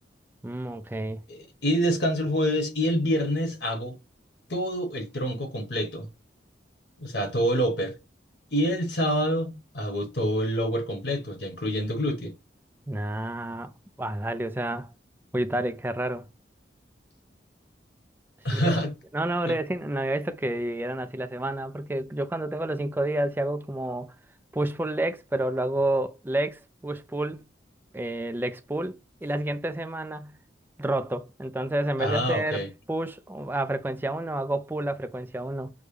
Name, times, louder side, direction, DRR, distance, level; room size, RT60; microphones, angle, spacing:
voice 1, 0.4-1.2 12.9-13.7 14.0-14.9 15.3-16.3 18.5-18.7 19.1-24.1 24.5-27.5 27.9-30.4 30.8-35.7, right 1 dB, 10° right, 0.3 m, -29 dB
voice 2, 1.3-4.0 4.5-6.1 7.0-7.9 8.5-12.3 18.4-18.9 19.4-19.6 32.0-32.7, equal, 65° left, 1.4 m, -26 dB
6.4 x 2.2 x 3.3 m
head